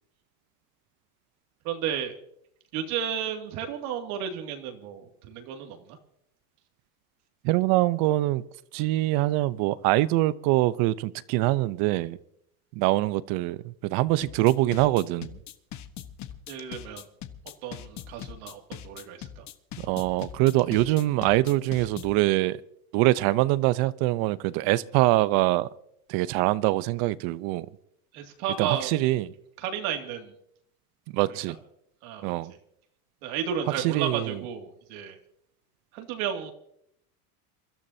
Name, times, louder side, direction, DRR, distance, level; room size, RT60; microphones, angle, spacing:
voice 1, 1.6-2.2 2.7-6.0 16.5-17.1 17.6-19.5 28.1-28.9 29.6-30.3 32.0-32.3 33.2-35.2 35.9-36.5, right 8 dB, 70° right, 2.5 m, -33 dB
voice 2, 7.4-8.4 8.7-12.2 12.7-15.4 19.8-22.6 22.9-25.7 26.1-27.7 28.6-29.3 31.1-31.6 32.2-32.5 33.8-34.4, right 17 dB, 50° right, 0.8 m, -24 dB
sound 1, 14.2-22.2, left 10 dB, 40° left, 1.3 m, -41 dB
28.5 x 13.5 x 2.8 m
supercardioid pair, 130°, 45 cm